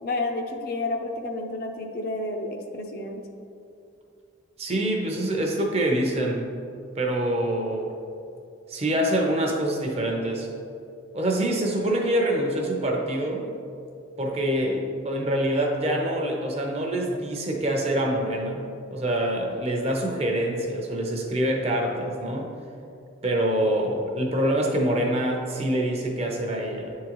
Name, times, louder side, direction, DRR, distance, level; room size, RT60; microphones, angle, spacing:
voice 1, 0.0-3.2, left 2 dB, 50° left, 3 dB, 0.5 m, -30 dB
voice 2, 4.6-6.5 7.0-7.9 8.7-10.5 11.1-13.5 14.2-18.6 18.9-22.5 23.2-27.0, right 1 dB, 30° right, 1 dB, 0.6 m, -25 dB
9.5 x 3.7 x 3.0 m, 2.6 s
head